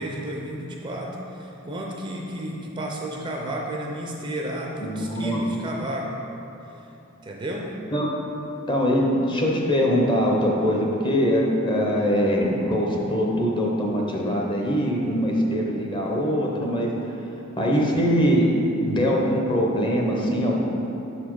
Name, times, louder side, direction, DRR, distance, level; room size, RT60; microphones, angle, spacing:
voice 1, 0.0-6.1 6.8-6.9 7.2-7.7, right 1 dB, 25° right, -1 dB, 0.4 m, -32 dB
voice 2, 4.8-5.4 7.9-8.1 8.7-17.2 17.6-18.5 18.8-20.6, equal, 25° left, -1 dB, 0.7 m, -22 dB
6.0 x 4.2 x 4.6 m, 2.9 s
head